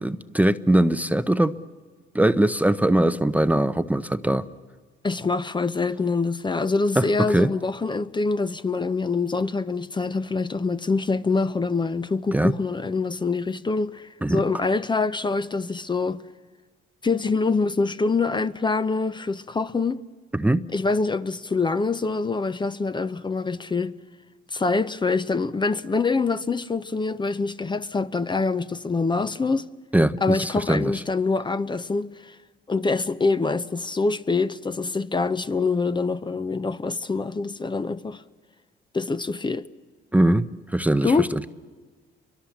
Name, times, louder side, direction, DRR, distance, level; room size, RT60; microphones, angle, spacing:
voice 1, 0.0-1.5 2.1-4.4 7.0-7.5 12.3-12.5 14.2-14.4 20.3-20.7 29.9-31.0 40.1-40.5 40.7-41.4, right 1 dB, 5° right, 0.7 m, -21 dB
voice 2, 5.0-16.2 17.0-20.0 20.7-23.9 24.5-29.6 30.2-32.4 32.7-38.2 38.9-39.7 41.0-41.3, left 4 dB, 25° left, 0.7 m, -25 dB
29.5 x 23.5 x 7.2 m
cardioid pair, 90°, 20 cm